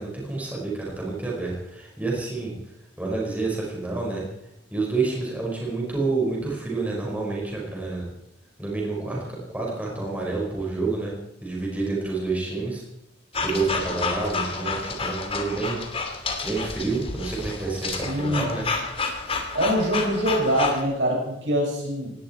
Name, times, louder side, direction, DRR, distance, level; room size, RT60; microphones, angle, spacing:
voice 1, 0.0-2.5 3.0-4.2 4.7-8.1 8.6-11.1 11.4-12.8 13.4-15.8 16.4-18.7, right 3 dB, 10° right, -3 dB, 5.1 m, -28 dB
sound 1, 13.3-20.8, left 4 dB, 30° left, 2.3 m, -30 dB
voice 2, 17.8-18.5 19.5-22.1, equal, 65° right, 0 dB, 6.2 m, -24 dB
18.5 x 17.5 x 4.5 m, 0.84 s
head